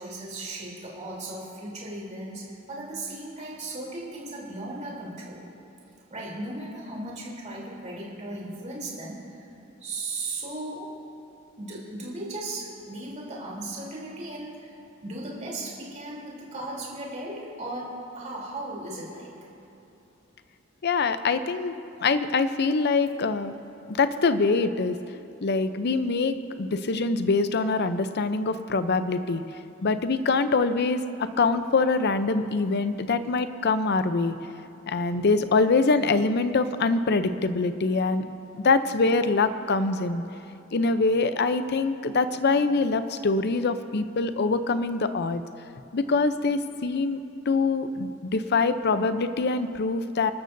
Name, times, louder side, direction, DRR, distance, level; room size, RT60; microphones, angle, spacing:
voice 1, 0.0-5.5 6.1-9.5 9.8-10.9 11.6-14.7 15.0-19.3, right 2 dB, 35° right, -5 dB, 3.3 m, -36 dB
voice 2, 20.8-21.7 22.0-23.5 23.9-25.0 25.4-29.4 29.8-34.4 34.9-38.3 38.5-40.2 40.7-45.4 45.9-47.2 47.5-50.3, left 3 dB, 55° left, 11 dB, 0.6 m, -24 dB
28.5 x 13.0 x 2.7 m, 3.0 s
head